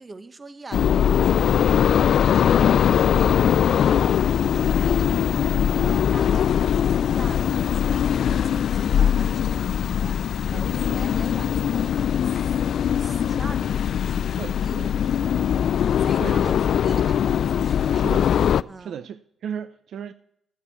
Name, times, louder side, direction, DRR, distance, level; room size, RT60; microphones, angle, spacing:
voice 1, 0.0-3.5 3.8-10.1 10.5-15.7 16.0-18.1 18.7-19.0, right 3 dB, 25° right, 1.1 m, -42 dB
sound 1, 0.7-18.6, left 9 dB, 65° left, 0.3 m, -21 dB
voice 2, 14.4-14.9 16.2-16.4 17.9-18.3 18.8-20.1, right 8 dB, 65° right, 0.5 m, -36 dB
13.0 x 8.9 x 4.3 m
cardioid pair, 90°, 0 cm